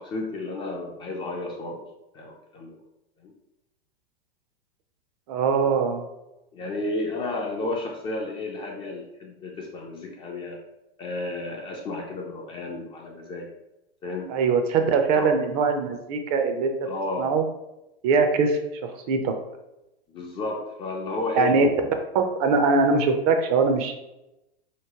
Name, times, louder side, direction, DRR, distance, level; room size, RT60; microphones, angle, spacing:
voice 1, 0.0-1.9 2.1-2.7 3.2-3.3 6.5-10.6 11.0-13.5 14.0-14.3 15.1-15.3 16.9-17.3 20.1-21.6, left 2 dB, 20° left, 0 dB, 0.3 m, -32 dB
voice 2, 5.3-6.0 14.3-16.7 17.2-17.4 18.0-18.6 19.1-19.3 21.4-21.7 22.1-23.9, right 4 dB, 40° right, 6 dB, 0.5 m, -21 dB
3.0 x 2.9 x 2.8 m, 0.93 s
hypercardioid pair, 110°, 29 cm